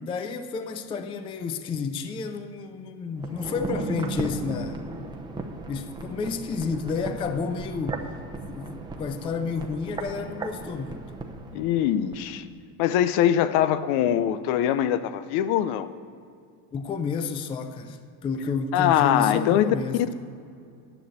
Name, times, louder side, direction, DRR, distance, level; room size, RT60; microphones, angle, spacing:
voice 1, 0.0-4.8 5.7-8.0 8.5-11.1 16.7-20.1, left 5 dB, 15° left, 0.3 m, -31 dB
sound 1, 3.2-12.2 12.5-12.6, right 3 dB, 10° right, 0.9 m, -36 dB
voice 2, 11.5-12.4 12.8-15.9 18.7-19.7, left 11 dB, 60° left, 0.7 m, -22 dB
10.0 x 6.1 x 8.5 m
supercardioid pair, 130°, 43 cm